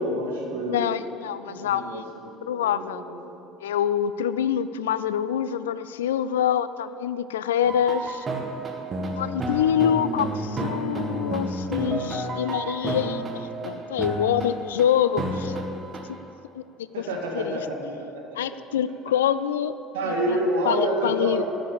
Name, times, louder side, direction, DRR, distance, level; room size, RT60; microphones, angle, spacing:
voice 1, 0.0-0.9 1.5-3.2 16.9-17.6 19.9-21.4, right 1 dB, 70° right, 1 dB, 2.0 m, -28 dB
voice 2, 0.7-2.0 2.4-3.0 3.6-8.3 9.2-15.5 16.5-16.6 17.0-17.1 17.3-17.6 18.4-19.8 20.0-20.4 20.6-21.4, left 9 dB, 75° left, 15 dB, 0.3 m, -26 dB
sound 1, 7.6-13.7 14.0-14.8 15.2-16.0, right 1 dB, 30° right, 1.9 m, -30 dB
13.5 x 6.4 x 8.3 m, 2.8 s
figure-of-eight pair, 65°, 0 cm